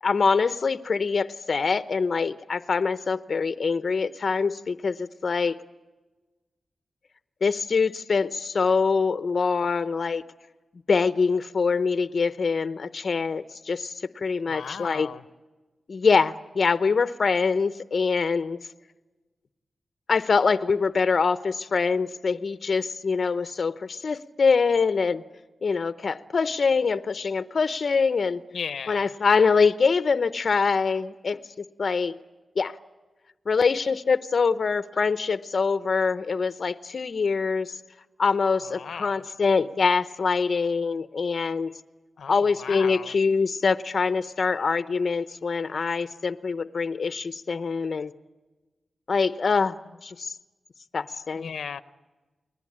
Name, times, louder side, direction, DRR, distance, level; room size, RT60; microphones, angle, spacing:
voice 1, 0.0-5.6 7.4-10.2 10.9-15.1 15.9-18.6 20.1-25.2 25.6-28.4 28.9-31.4 31.8-32.2 32.6-32.7 33.5-37.8 38.2-41.7 42.3-48.1 49.1-49.8 50.0-50.4 50.9-51.5, left 5 dB, 50° left, 12 dB, 0.8 m, -24 dB
voice 2, 14.5-15.2 28.5-29.1 38.6-39.2 42.2-43.2 51.4-51.8, left 6 dB, 85° left, 13 dB, 0.8 m, -36 dB
29.5 x 20.5 x 8.7 m, 1.2 s
wide cardioid pair, 140°, 0 cm